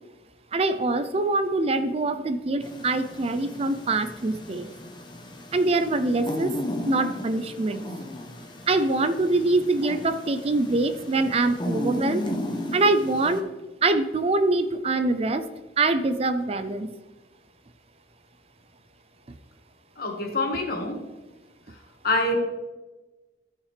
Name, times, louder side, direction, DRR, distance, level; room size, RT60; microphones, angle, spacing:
voice 1, 0.5-4.7 5.5-6.6 6.8-7.9 8.7-12.3 12.7-13.5 13.8-15.5 15.8-16.9, right 2 dB, 35° right, 10 dB, 0.4 m, -24 dB
sound 1, 2.6-13.4, left 1 dB, 25° left, 0.9 m, -35 dB
voice 2, 20.0-21.0 22.0-22.4, left 2 dB, 55° left, 2 dB, 1.7 m, -25 dB
14.5 x 5.6 x 3.3 m, 1.1 s
head